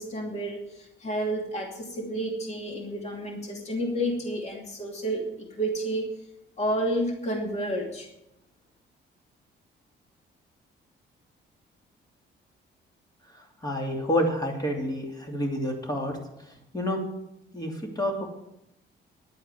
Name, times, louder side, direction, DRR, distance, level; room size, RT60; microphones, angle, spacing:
voice 1, 0.0-6.2 6.6-8.1, right 1 dB, 35° left, 1 dB, 2.6 m, -30 dB
voice 2, 13.6-16.2 16.7-17.0 17.5-18.3, equal, 20° left, 1 dB, 2.9 m, -28 dB
11.0 x 9.1 x 8.0 m, 0.82 s
cardioid pair, 160°, 20 cm